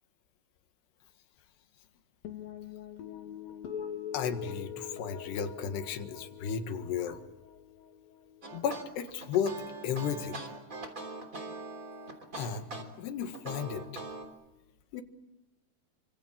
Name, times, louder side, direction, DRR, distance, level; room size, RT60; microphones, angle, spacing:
sound 1, 2.3-8.8, left 8 dB, 60° left, 3.7 m, -43 dB
voice 1, 4.1-7.2 8.5-9.6 9.8-10.4 12.4-12.7 13.0-13.8 14.9-15.0, left 7 dB, 85° left, 8 dB, 3.8 m, -34 dB
sound 2, 8.4-14.2, right 2 dB, 20° right, 3.1 m, -42 dB
28.5 x 25.5 x 7.4 m, 1.0 s
omnidirectional pair, 4.7 m